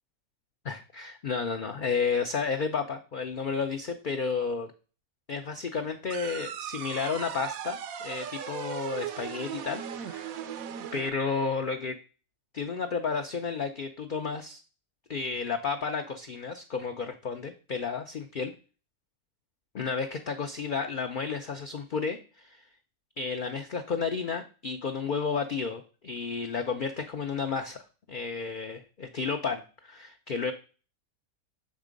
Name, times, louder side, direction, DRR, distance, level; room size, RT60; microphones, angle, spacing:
voice 1, 0.6-4.7 5.3-7.8 8.0-10.4 10.9-12.0 12.5-14.6 15.1-18.5 19.7-22.6 23.2-30.5, left 5 dB, 55° left, 5 dB, 0.5 m, -32 dB
sound 1, 6.1-11.1, right 9 dB, 80° right, 1.1 m, -38 dB
7.4 x 3.6 x 5.1 m, 0.35 s
omnidirectional pair, 1.5 m